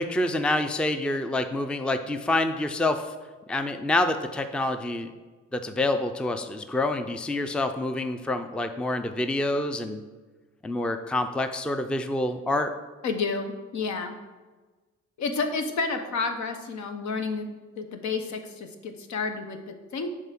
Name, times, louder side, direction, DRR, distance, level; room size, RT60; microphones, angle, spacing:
voice 1, 0.0-3.1 3.5-5.1 5.5-10.0 10.6-12.7, left 2 dB, 5° left, 8 dB, 0.4 m, -27 dB
voice 2, 13.0-14.2 15.2-17.5 17.7-20.1, left 4 dB, 70° left, 6 dB, 1.0 m, -30 dB
7.3 x 3.6 x 5.9 m, 1.3 s
cardioid pair, 90°, 30 cm